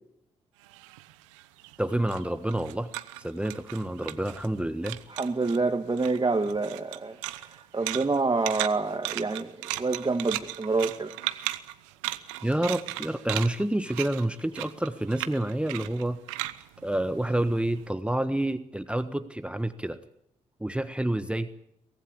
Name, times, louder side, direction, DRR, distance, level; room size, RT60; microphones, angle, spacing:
sound 1, 0.6-4.6 4.8-5.6 5.9-17.8, right 17 dB, 85° right, 0.9 m, -37 dB
voice 1, 1.8-2.9 3.2-5.0 12.4-16.5 16.8-20.0 20.6-21.5, right 1 dB, 5° right, 11 dB, 1.4 m, -28 dB
voice 2, 5.1-11.1, right 3 dB, 30° right, 3 dB, 2.2 m, -27 dB
23.5 x 18.5 x 8.6 m, 0.77 s
hypercardioid pair, 40°, 15 cm